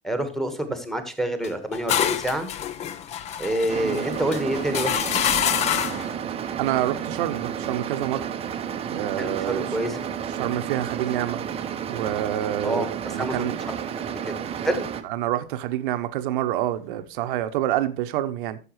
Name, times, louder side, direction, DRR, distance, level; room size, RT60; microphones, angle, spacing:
voice 1, 0.0-2.5 3.4-5.0 9.2-10.0 12.6-12.9 13.1-13.8 14.2-14.9, right 1 dB, ahead, 1.4 m, -27 dB
sound 1, 1.4-6.1, left 9 dB, 20° left, 0.4 m, -27 dB
sound 2, 3.7-15.0, right 8 dB, 20° right, 0.7 m, -31 dB
voice 2, 6.6-8.3 8.9-9.7 10.3-11.4 11.9-13.6 15.0-18.6, right 13 dB, 50° right, 0.9 m, -27 dB
13.5 x 6.9 x 3.1 m
figure-of-eight pair, 90°, 32 cm